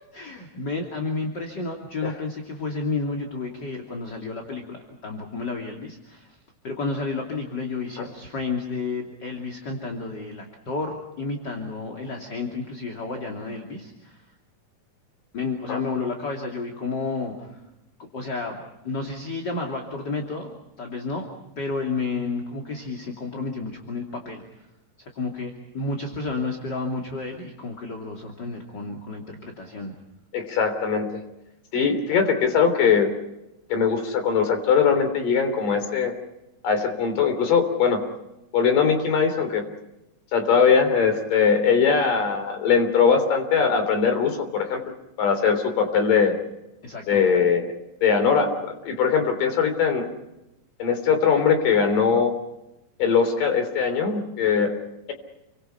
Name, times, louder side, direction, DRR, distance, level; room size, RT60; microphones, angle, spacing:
voice 1, 0.1-6.4 6.6-14.2 15.3-17.6 18.0-20.5 20.8-21.3 21.6-24.7 25.0-29.9 46.8-47.2, left 3 dB, 30° left, 2 dB, 2.9 m, -31 dB
voice 2, 30.3-31.2 31.7-33.1 33.7-36.1 36.6-38.0 38.5-39.6 40.3-44.8 45.2-46.4 47.1-47.7 48.0-50.1 50.8-52.3 53.0-54.7, left 6 dB, 60° left, 6 dB, 5.0 m, -21 dB
30.0 x 24.5 x 5.8 m, 0.92 s
omnidirectional pair, 4.4 m